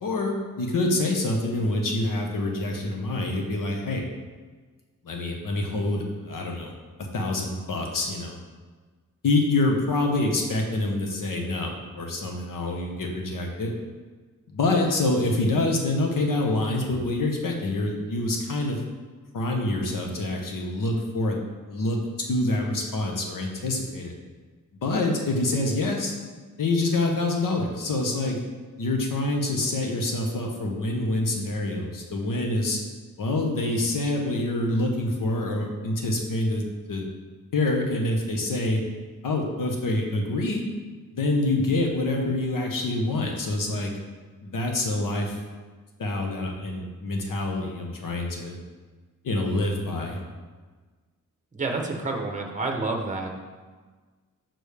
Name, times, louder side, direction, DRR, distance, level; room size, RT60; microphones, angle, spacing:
voice 1, 0.0-4.0 5.0-6.7 7.1-8.4 9.2-13.7 14.5-18.8 19.3-21.4 21.7-22.0 22.3-24.1 24.8-26.1 26.6-28.4 28.8-32.8 33.2-36.6 36.9-37.1 37.5-38.8 39.2-40.6 41.1-43.9 44.4-45.4 46.0-48.6 49.2-50.2, left 2 dB, 80° left, 1 dB, 1.0 m, -26 dB
voice 2, 51.5-53.3, right 3 dB, 25° right, 2 dB, 0.8 m, -29 dB
6.6 x 5.9 x 3.4 m, 1.4 s
wide cardioid pair, 140°, 32 cm